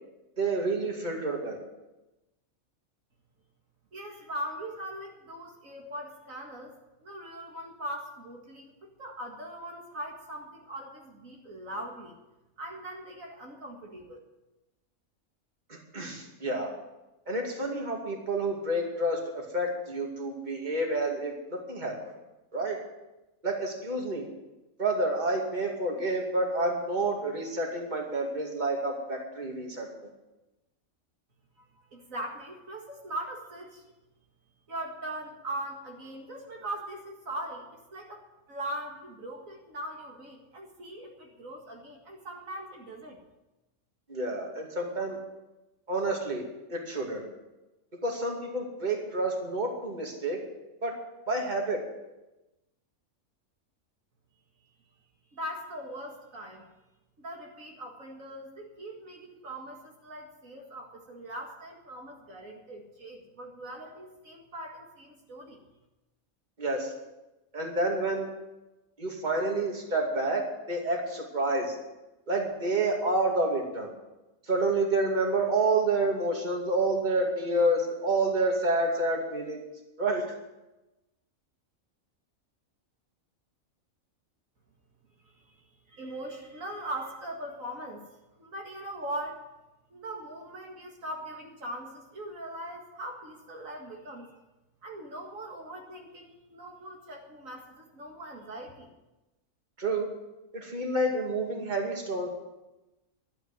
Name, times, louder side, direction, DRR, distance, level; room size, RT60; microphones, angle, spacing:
voice 1, 0.4-1.6 15.7-16.7 17.3-19.2 19.5-21.9 22.5-22.8 23.4-24.2 24.8-29.9 44.1-45.2 45.9-46.4 46.7-47.2 48.0-50.4 50.8-50.9 51.3-51.8 66.6-66.9 67.5-68.3 69.0-71.8 72.3-73.9 74.5-79.6 80.0-80.2 99.8-100.1 100.5-102.3, right 2 dB, 30° right, 0 dB, 2.6 m, -29 dB
voice 2, 3.9-6.7 7.0-12.1 12.6-14.2 31.6-33.8 34.7-38.2 38.5-43.2 55.3-56.7 57.2-65.6 85.2-88.0 88.4-89.4 89.9-94.3 94.8-98.9, right 1 dB, 70° right, 0 dB, 2.3 m, -40 dB
12.0 x 9.5 x 9.3 m, 1.0 s
omnidirectional pair, 1.5 m